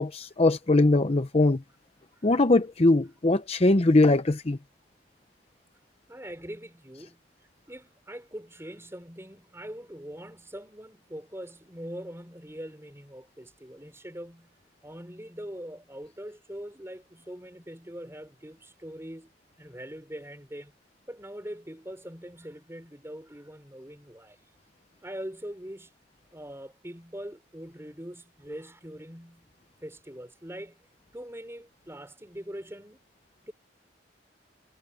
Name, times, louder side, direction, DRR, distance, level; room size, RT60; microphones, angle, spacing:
voice 1, 0.0-1.6 2.2-4.6, left 2 dB, 35° left, 0.7 m, -21 dB
voice 2, 6.1-7.2 7.7-14.6 14.8-19.3 19.6-20.7 21.1-24.4 25.0-25.9 26.3-29.5 29.8-30.9 31.1-33.0 33.5-33.6, equal, 15° right, 5.1 m, -42 dB
head